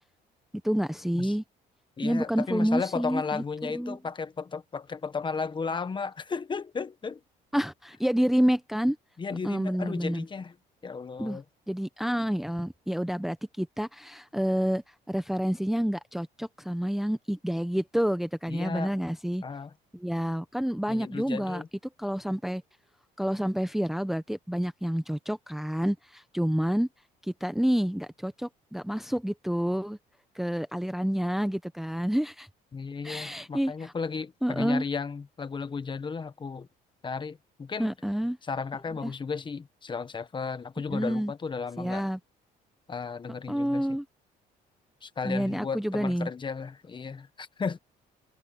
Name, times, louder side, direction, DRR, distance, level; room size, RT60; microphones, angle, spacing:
voice 1, 0.6-1.4 2.0-4.0 7.5-9.0 9.4-10.2 11.2-11.4 11.7-14.8 15.1-19.4 19.9-21.6 22.0-22.6 23.2-26.9 27.4-30.0 30.3-32.5 33.0-33.9 34.4-34.8 37.8-38.4 39.0-39.1 40.9-41.3 41.8-42.2 43.5-44.0 45.2-46.3, equal, ahead, 0.9 m, -28 dB
voice 2, 2.0-7.2 9.2-10.5 10.8-11.4 18.5-19.0 19.4-19.7 20.9-21.7 32.7-36.7 37.0-37.9 38.5-42.0 42.9-44.0 45.0-47.8, left 5 dB, 30° left, 1.3 m, -34 dB
cardioid pair, 110°, 17 cm